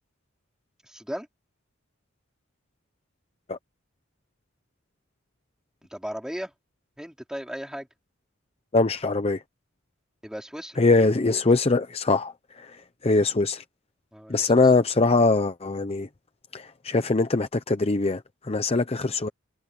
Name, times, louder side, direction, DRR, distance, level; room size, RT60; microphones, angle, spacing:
voice 1, 0.8-1.3 5.8-6.5 7.0-7.9 10.2-10.8 14.1-14.5, equal, 5° right, 4.7 m, -36 dB
voice 2, 8.7-9.4 10.8-13.6 14.3-16.1 16.5-19.3, left 3 dB, 30° left, 0.7 m, -22 dB
head